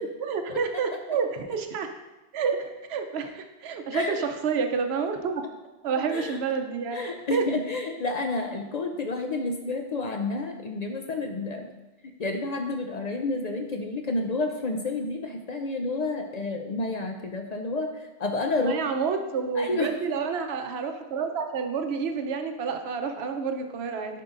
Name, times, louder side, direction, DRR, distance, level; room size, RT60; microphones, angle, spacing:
voice 1, 0.0-1.9 2.3-5.5 5.8-7.0 7.3-7.4 18.6-24.2, right 5 dB, 85° right, 6 dB, 0.9 m, -29 dB
voice 2, 3.9-4.2 6.1-6.4 6.9-11.7 12.0-18.8 19.6-19.9, left 2 dB, 55° left, 4 dB, 0.5 m, -30 dB
10.0 x 4.6 x 2.5 m, 1.1 s
omnidirectional pair, 1.0 m